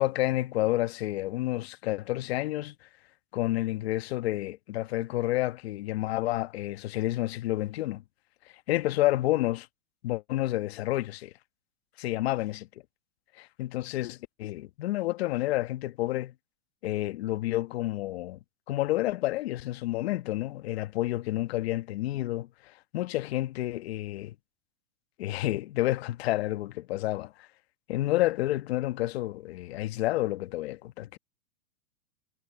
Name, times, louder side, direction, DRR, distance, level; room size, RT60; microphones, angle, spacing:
voice 1, 0.0-2.7 3.3-8.0 8.7-9.7 10.0-11.3 12.0-12.7 13.4-16.3 16.8-18.4 18.7-24.3 25.2-27.5 27.9-31.2, left 16 dB, 65° left, 1.2 m, -30 dB
supercardioid pair, 145°, 34 cm